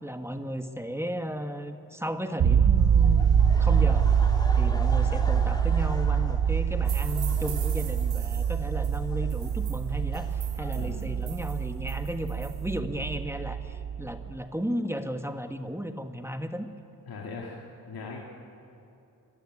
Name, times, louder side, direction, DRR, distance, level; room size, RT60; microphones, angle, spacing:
voice 1, 0.0-4.1 4.5-16.7, equal, 5° right, 7 dB, 1.4 m, -34 dB
sound 1, 2.4-14.3, right 7 dB, 65° right, 0.9 m, -25 dB
Laughter, 3.0-11.5, left 1 dB, 10° left, 2.4 m, -44 dB
sound 2, 6.9-12.7, right 10 dB, 90° right, 1.2 m, -44 dB
voice 2, 10.7-11.1 17.1-18.2, left 4 dB, 75° left, -2 dB, 2.2 m, -40 dB
23.5 x 12.5 x 9.7 m, 2.7 s
cardioid pair, 55°, 37 cm